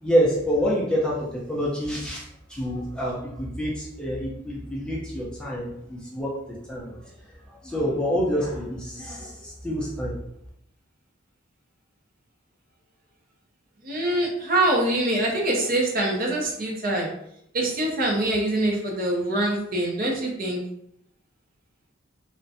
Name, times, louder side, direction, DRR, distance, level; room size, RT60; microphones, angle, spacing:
voice 1, 0.0-2.2 2.5-7.1 7.6-10.2, equal, 5° left, -5 dB, 0.5 m, -27 dB
voice 2, 13.8-17.1 17.5-20.6, right 1 dB, 45° right, -1 dB, 0.6 m, -24 dB
2.5 x 2.1 x 2.6 m, 0.75 s
head